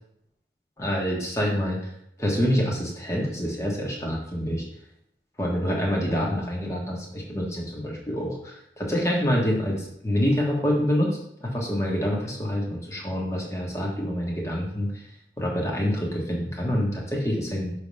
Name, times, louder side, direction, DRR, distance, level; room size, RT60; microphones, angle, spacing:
voice 1, 0.8-1.8 2.2-4.6 5.4-15.0 15.4-17.7, equal, 15° left, -2 dB, 1.3 m, -26 dB
6.2 x 3.3 x 5.4 m, 0.74 s
head